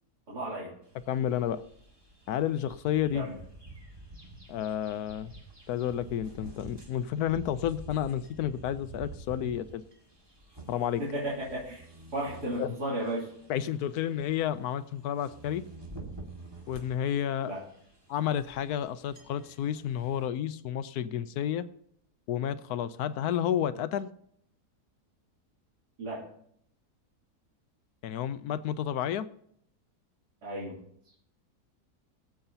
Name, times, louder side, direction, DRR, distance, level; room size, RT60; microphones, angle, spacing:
voice 1, 0.3-0.7 3.1-3.3 11.0-11.9 12.1-13.3 17.4-17.6 26.0-26.2 30.4-30.8, right 1 dB, 85° right, -7 dB, 3.5 m, -34 dB
sound 1, 0.8-20.3, right 2 dB, 15° right, 1.8 m, -49 dB
voice 2, 1.1-1.6 2.3-3.3 4.5-5.3 5.7-9.8 10.7-11.0 12.6-12.7 13.5-15.6 16.7-17.5 18.1-21.7 22.3-24.1 28.0-29.3, left 10 dB, 80° left, 14 dB, 1.1 m, -31 dB
22.0 x 7.9 x 2.8 m, 0.68 s
omnidirectional pair, 1.7 m